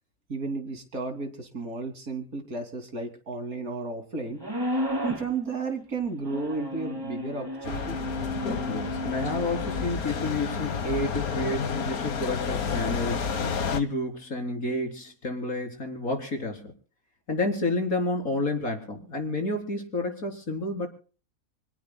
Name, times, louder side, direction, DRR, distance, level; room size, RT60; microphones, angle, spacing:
voice 1, 0.3-4.4 5.0-8.0, right 4 dB, 75° right, 5 dB, 3.5 m, -33 dB
sound 1, 4.4-5.3 6.2-9.9, equal, 15° right, 2.2 m, -33 dB
sound 2, 7.6-13.8, left 5 dB, 90° left, 1.9 m, -30 dB
voice 2, 8.7-13.4 13.7-16.7 17.3-20.9, left 2 dB, 75° left, 3 dB, 4.4 m, -30 dB
27.0 x 18.0 x 2.3 m, 0.40 s
omnidirectional pair, 1.5 m